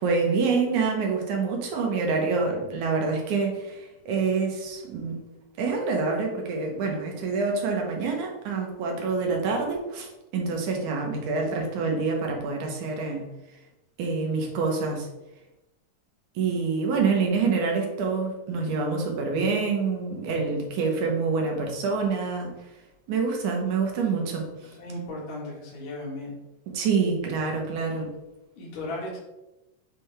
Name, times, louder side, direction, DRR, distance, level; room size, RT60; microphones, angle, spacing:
voice 1, 0.0-5.2 5.6-13.3 14.0-15.1 16.4-22.5 23.1-24.4 26.7-28.1, right 4 dB, 75° right, 1 dB, 2.4 m, -26 dB
voice 2, 24.8-26.3 28.6-29.2, left 1 dB, 80° left, -5 dB, 3.2 m, -36 dB
7.5 x 3.8 x 3.4 m, 0.96 s
omnidirectional pair, 3.7 m